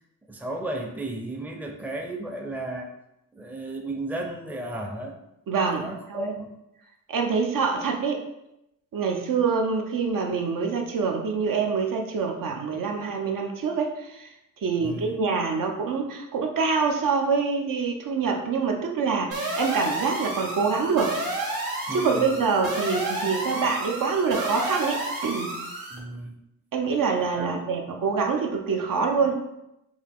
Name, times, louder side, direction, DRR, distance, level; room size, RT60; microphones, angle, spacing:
voice 1, 0.3-2.9 3.3-5.2 5.8-6.6 14.8-15.2 21.9-22.4 25.9-26.4 27.4-27.7, right 2 dB, 5° right, 2 dB, 0.5 m, -34 dB
voice 2, 5.5-6.3 7.1-8.2 8.9-14.3 14.6-21.2 21.9-25.6 26.7-29.4, right 5 dB, 70° right, 3 dB, 0.7 m, -25 dB
sound 1, 19.3-26.0, right 2 dB, 90° right, 1.4 m, -31 dB
6.1 x 2.5 x 3.5 m, 0.87 s
wide cardioid pair, 120°, 34 cm